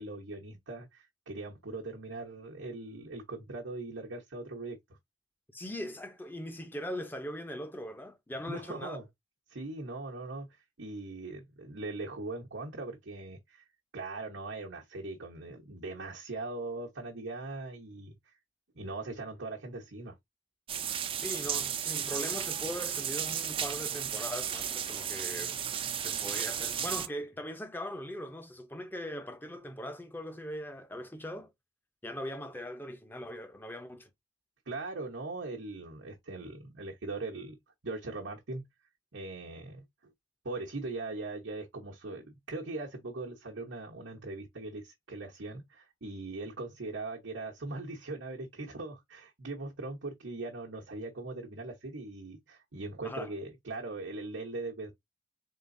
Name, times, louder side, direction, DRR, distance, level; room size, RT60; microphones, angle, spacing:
voice 1, 0.0-4.8 8.5-9.0 9.5-13.6 13.9-18.3 18.7-20.2 34.7-37.6 37.8-38.6 39.1-39.8 40.4-54.9, right 2 dB, 85° right, 1.0 m, -40 dB
voice 2, 5.5-9.0 21.2-25.5 26.0-31.5 32.0-34.1 53.0-53.3, equal, 10° left, 0.7 m, -40 dB
sound 1, 20.7-27.1, right 8 dB, 30° right, 0.4 m, -34 dB
3.9 x 3.7 x 2.6 m
head